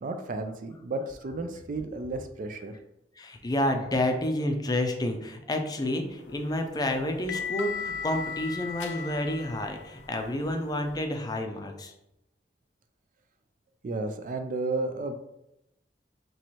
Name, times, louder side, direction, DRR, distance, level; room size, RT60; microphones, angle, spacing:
voice 1, 0.0-2.7 13.8-15.2, right 2 dB, 50° right, 7 dB, 0.4 m, -33 dB
voice 2, 3.2-11.9, left 1 dB, 20° left, 4 dB, 0.5 m, -29 dB
sound 1, 6.2-11.0, left 7 dB, 80° left, 0.5 m, -38 dB
4.5 x 3.0 x 2.9 m, 0.85 s
head